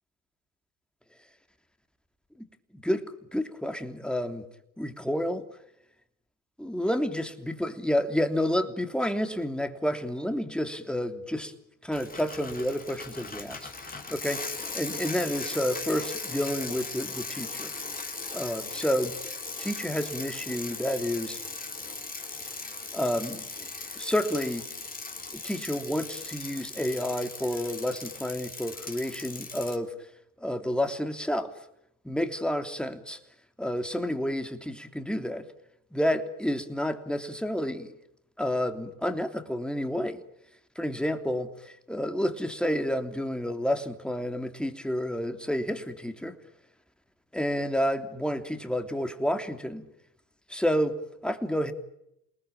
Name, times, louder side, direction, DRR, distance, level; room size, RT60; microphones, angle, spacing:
voice 1, 2.7-3.0 3.3-4.4 4.8-5.4 6.6-7.1 7.6-11.5 11.8-17.7 18.3-19.3 19.6-21.4 22.9-24.7 25.3-29.9 30.4-31.5 32.0-33.2 33.6-35.5 35.9-37.9 38.4-40.2 40.7-46.4 47.3-49.9 50.5-51.7, equal, ahead, 7 dB, 3.2 m, -30 dB
Bicycle, 11.9-29.8, left 3 dB, 20° left, 4.0 m, -38 dB
29.0 x 19.5 x 8.8 m, 0.80 s
hypercardioid pair, 80°, 44 cm